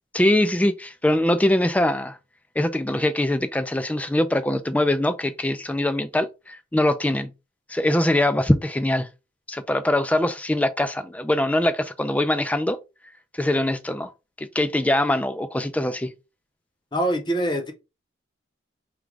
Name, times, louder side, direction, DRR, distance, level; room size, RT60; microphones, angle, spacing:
voice 1, 0.1-2.2 2.6-7.3 7.7-9.1 9.5-12.8 13.3-14.1 14.4-16.1, left 1 dB, 5° left, 0.3 m, -22 dB
voice 2, 16.9-17.7, right 1 dB, 20° left, 0.8 m, -24 dB
4.6 x 2.2 x 3.8 m
head